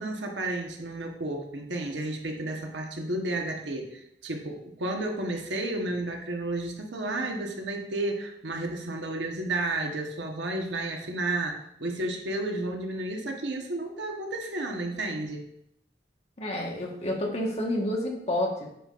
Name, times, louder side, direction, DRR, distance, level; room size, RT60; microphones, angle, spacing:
voice 1, 0.0-15.4, right 2 dB, 85° right, 2 dB, 1.2 m, -32 dB
voice 2, 16.4-18.6, left 1 dB, 40° left, -1 dB, 1.3 m, -29 dB
8.9 x 5.8 x 2.5 m, 0.77 s
head